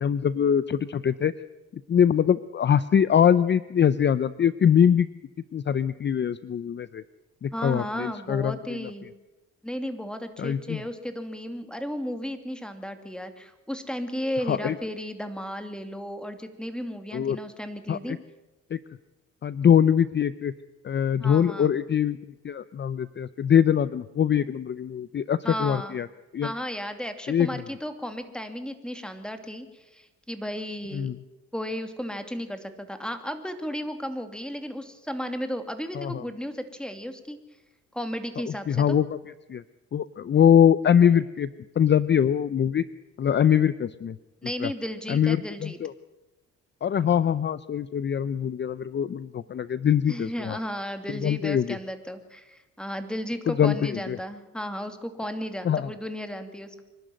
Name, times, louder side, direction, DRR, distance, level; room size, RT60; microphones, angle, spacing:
voice 1, 0.0-1.3 1.9-5.1 5.5-7.0 7.4-8.9 10.4-10.8 14.5-14.8 17.1-17.4 17.9-18.2 18.7-18.8 19.4-20.5 20.8-22.2 22.4-26.1 26.3-26.5 27.3-27.6 30.9-31.2 35.9-36.2 38.5-39.1 39.5-39.6 39.9-41.5 41.8-42.8 43.2-44.2 44.6-44.7 45.1-45.9 46.8-50.6 51.1-51.8 53.5-54.2 55.6-55.9, left 8 dB, 35° left, 16 dB, 0.6 m, -23 dB
voice 2, 7.5-9.1 9.6-18.2 21.2-21.7 25.4-26.0 26.4-31.1 31.5-37.4 37.9-39.0 44.4-45.8 50.1-56.8, equal, 5° left, 7 dB, 2.6 m, -34 dB
25.0 x 12.0 x 9.2 m, 1.0 s
cardioid pair, 90°, 30 cm